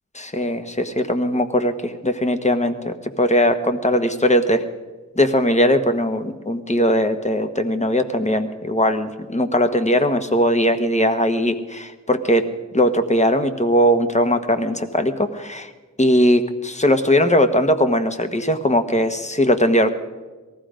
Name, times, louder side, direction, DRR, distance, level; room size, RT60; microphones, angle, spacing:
voice 1, 0.1-4.6 5.2-12.5 12.7-15.7 16.0-19.9, equal, 25° left, 8 dB, 1.2 m, -19 dB
19.0 x 14.5 x 5.1 m, 1.3 s
wide cardioid pair, 65°, 30 cm